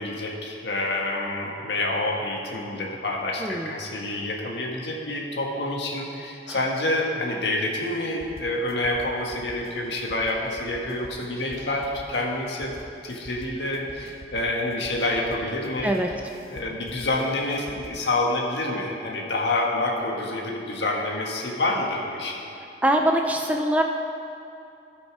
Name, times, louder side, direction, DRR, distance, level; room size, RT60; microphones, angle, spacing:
voice 1, 0.0-12.7 13.0-15.9 16.5-22.4, left 2 dB, 75° left, -1 dB, 1.4 m, -27 dB
voice 2, 3.4-3.7 6.5-6.6 15.8-16.1 22.8-23.8, right 1 dB, 10° right, 2 dB, 0.5 m, -23 dB
sound 1, 8.2-18.1, left 1 dB, 55° left, 0.8 m, -46 dB
15.5 x 5.4 x 4.9 m, 2.7 s
head